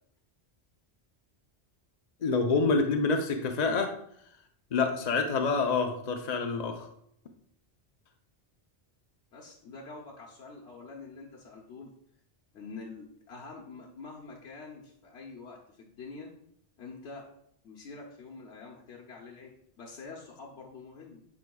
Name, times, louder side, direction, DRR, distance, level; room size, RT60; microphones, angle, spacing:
voice 1, 2.2-3.9 4.7-6.9, left 4 dB, 45° left, 4 dB, 0.7 m, -27 dB
voice 2, 9.3-11.9 12.5-16.3 16.8-17.3 17.6-21.2, left 4 dB, 90° left, -2 dB, 1.2 m, -46 dB
9.6 x 4.7 x 2.3 m, 0.71 s
omnidirectional pair, 1.1 m